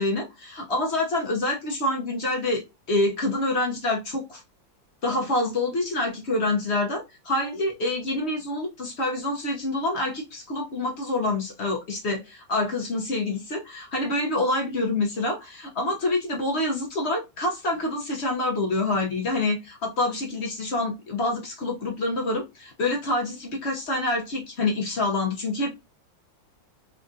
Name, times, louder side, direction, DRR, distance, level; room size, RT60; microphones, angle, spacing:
voice 1, 0.0-2.6 2.9-4.4 5.0-25.8, left 2 dB, 55° left, 0 dB, 0.7 m, -27 dB
3.5 x 2.5 x 2.3 m, 0.24 s
omnidirectional pair, 2.0 m